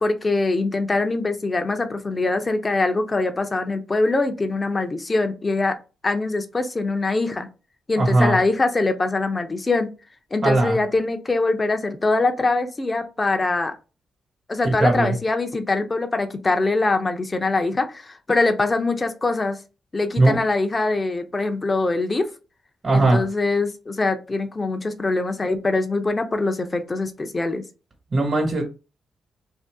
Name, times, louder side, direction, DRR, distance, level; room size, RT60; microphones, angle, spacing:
voice 1, 0.0-5.8 6.0-7.5 7.9-9.9 10.3-13.7 14.5-19.6 19.9-22.3 22.9-27.6, left 3 dB, 30° left, 7 dB, 0.7 m, -23 dB
voice 2, 8.0-8.4 10.4-10.8 14.6-15.1 20.2-20.4 22.8-23.3 28.1-28.6, right 2 dB, 45° right, 0 dB, 1.3 m, -19 dB
2.7 x 2.5 x 3.5 m, 0.31 s
supercardioid pair, 55°, 0 cm